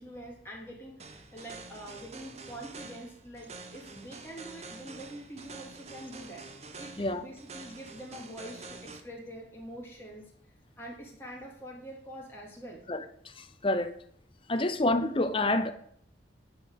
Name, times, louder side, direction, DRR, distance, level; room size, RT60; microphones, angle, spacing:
voice 1, 0.0-6.4 6.8-10.3 10.8-12.8 14.5-14.7 15.0-15.1, right 1 dB, 10° left, 3.0 m, -45 dB
sound 1, 1.0-9.0, right 3 dB, 35° right, 0.9 m, -47 dB
voice 2, 13.4-13.9 14.5-15.7, left 2 dB, 30° left, 0.7 m, -28 dB
10.0 x 4.7 x 8.0 m
head